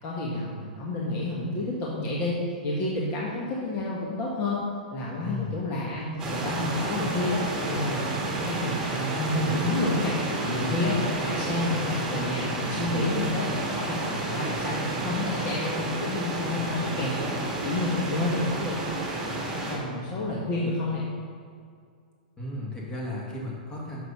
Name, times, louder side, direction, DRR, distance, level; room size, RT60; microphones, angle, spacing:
voice 1, 0.0-4.6 4.9-6.0 6.3-7.4 7.7-10.2 10.4-17.4 17.6-18.8 19.2-21.0, left 2 dB, 35° left, -4 dB, 1.5 m, -29 dB
voice 2, 5.2-5.5 5.9-6.2 22.4-24.0, left 1 dB, 15° left, -4 dB, 2.1 m, -35 dB
sound 1, 6.2-19.8, right 2 dB, 15° right, 2.0 m, -31 dB
sound 2, 6.3-12.0, right 7 dB, 80° right, 0.4 m, -41 dB
6.7 x 6.1 x 5.6 m, 2.2 s
hypercardioid pair, 125°, 5 cm